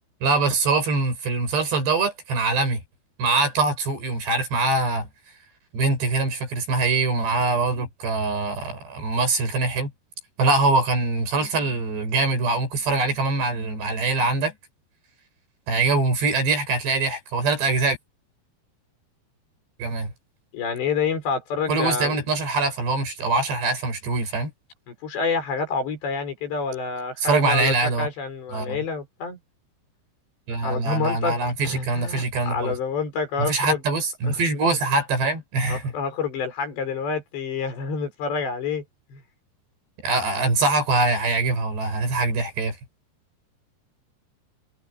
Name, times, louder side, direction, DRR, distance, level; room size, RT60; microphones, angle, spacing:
voice 1, 0.2-2.8 3.2-5.1 5.7-9.9 10.4-14.5 15.7-18.0 19.8-20.1 21.7-24.5 27.2-28.1 28.5-28.8 30.5-32.8 33.4-35.9 40.0-42.8, right 3 dB, 80° right, 9.3 m, -23 dB
voice 2, 20.5-22.1 24.9-29.4 30.6-31.4 31.6-33.8 34.2-34.4 35.7-38.8 39.1-39.2, left 5 dB, 90° left, 8.3 m, -28 dB
omnidirectional pair, 4.8 m